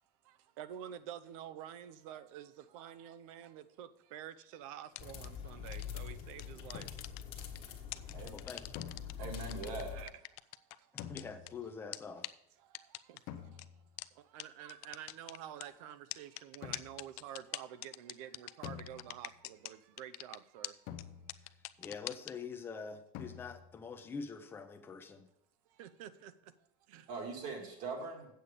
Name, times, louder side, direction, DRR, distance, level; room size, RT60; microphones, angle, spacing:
voice 1, 0.6-2.5 2.7-6.9 9.2-9.3 9.9-10.1 14.3-20.7 25.8-26.3 26.9-27.0, right 10 dB, 65° right, 0.6 m, -48 dB
sound 1, 4.9-5.3 5.7-6.0 6.4-7.6 7.9-9.1 9.5-11.5 11.9-12.0 12.2-12.3 12.7-13.2 13.6-13.7 14.0-14.1 14.4-14.5 14.7-15.6 16.1-19.7 20.0-20.4 20.6-20.7 21.0-21.1 21.3-22.3, left 20 dB, 70° left, 0.4 m, -43 dB
sound 2, 5.0-10.0, left 8 dB, 30° left, 1.2 m, -45 dB
sound 3, 6.7-7.3 8.8-9.6 11.0-11.8 13.3-14.0 16.6-17.2 18.6-19.5 20.9-21.7 23.1-23.8, left 9 dB, 45° left, 0.8 m, -48 dB
voice 2, 8.1-8.9 9.2-9.3 10.9-12.3 21.4-25.3, left 5 dB, 10° left, 0.6 m, -46 dB
voice 3, 9.2-10.0 27.1-28.3, right 4 dB, 45° right, 1.8 m, -41 dB
8.1 x 8.0 x 5.1 m
cardioid pair, 175°, 19 cm